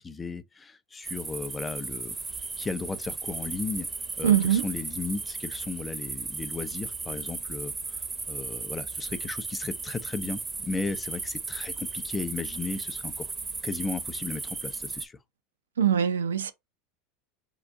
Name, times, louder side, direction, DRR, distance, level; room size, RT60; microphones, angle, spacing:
voice 1, 0.0-2.1 2.6-3.9 4.2-13.3 13.6-15.2, left 4 dB, 20° left, 0.5 m, -35 dB
sound 1, 1.0-15.0, right 4 dB, 20° right, 0.7 m, -36 dB
voice 2, 4.2-4.6 15.8-16.5, right 9 dB, 90° right, 0.5 m, -22 dB
3.8 x 2.4 x 3.6 m
hypercardioid pair, 90°, 0 cm